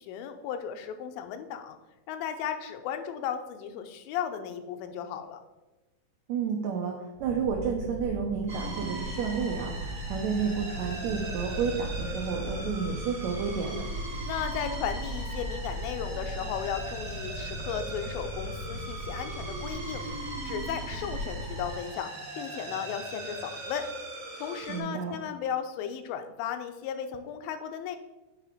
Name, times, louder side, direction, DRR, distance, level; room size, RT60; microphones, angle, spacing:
voice 1, 0.0-1.8 2.1-5.4 14.3-20.0 20.4-22.1 22.4-23.8 24.4-28.0, left 8 dB, 85° left, 7 dB, 2.4 m, -35 dB
voice 2, 6.3-6.9 7.2-13.9 24.7-25.2, right 6 dB, 90° right, 1 dB, 1.6 m, -31 dB
sound 1, 7.1-21.8, equal, 70° right, 2.2 m, -38 dB
sound 2, 8.5-24.8, right 2 dB, 55° right, 0.9 m, -40 dB
7.6 x 3.6 x 4.9 m, 1.1 s
omnidirectional pair, 4.1 m